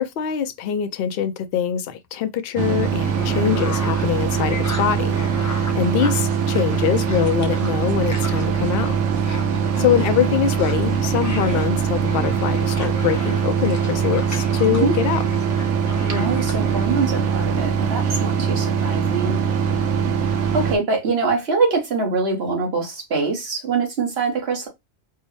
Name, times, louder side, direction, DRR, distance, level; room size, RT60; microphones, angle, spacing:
voice 1, 0.0-9.0 9.8-15.2, left 9 dB, 60° left, 0.7 m, -23 dB
sound 1, 2.6-20.8, right 7 dB, 85° right, 1.0 m, -22 dB
sound 2, 3.0-16.8, left 2 dB, 20° left, 0.5 m, -36 dB
voice 2, 16.1-19.4 20.3-24.7, right 4 dB, 60° right, 1.3 m, -24 dB
4.5 x 2.1 x 3.1 m
omnidirectional pair, 1.2 m